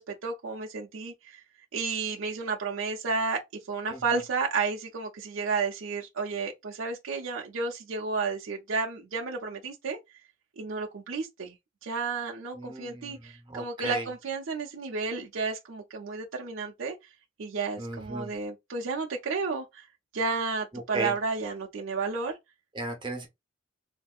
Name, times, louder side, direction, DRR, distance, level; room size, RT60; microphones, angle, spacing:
voice 1, 0.0-1.4 1.7-3.4 3.7-10.0 10.6-11.6 11.8-16.9 17.4-19.9 20.1-22.4, right 4 dB, 70° right, 0.5 m, -32 dB
voice 2, 12.5-14.0 17.8-18.3 20.9-21.1 22.7-23.3, right 2 dB, 25° right, 0.8 m, -36 dB
3.5 x 2.6 x 2.3 m
head